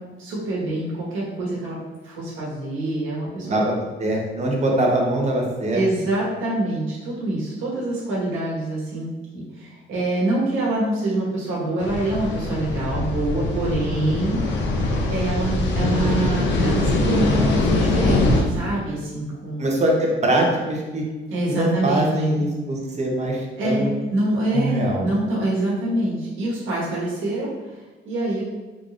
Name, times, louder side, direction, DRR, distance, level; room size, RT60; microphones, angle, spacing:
voice 1, 0.2-1.8 2.0-3.7 5.7-14.7 15.1-19.7 21.3-22.5 23.6-28.4, right 1 dB, 85° right, -5 dB, 1.3 m, -25 dB
voice 2, 3.4-5.8 19.6-21.0 21.5-23.9 24.5-25.1, right 1 dB, 35° right, 0 dB, 0.8 m, -23 dB
sound 1, 11.8-18.4, left 2 dB, 65° left, 0.7 m, -22 dB
3.7 x 3.3 x 2.4 m, 1.2 s
cardioid pair, 90°, 20 cm